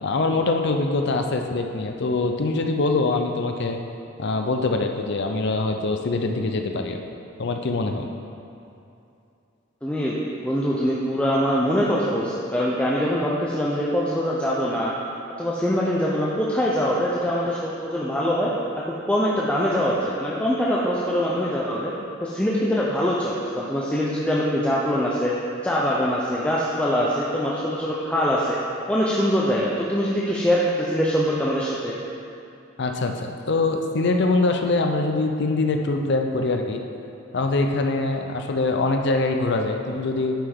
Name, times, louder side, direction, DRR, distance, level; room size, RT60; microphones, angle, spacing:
voice 1, 0.0-3.8 4.2-7.0 7.4-8.1 32.8-36.8 37.3-40.3, left 3 dB, 60° left, 4 dB, 0.6 m, -23 dB
voice 2, 9.8-10.2 10.4-15.0 15.4-18.5 19.1-21.9 22.2-25.3 25.6-28.6 28.9-31.9, equal, 5° left, -6 dB, 0.6 m, -23 dB
9.9 x 5.7 x 3.6 m, 2.7 s
head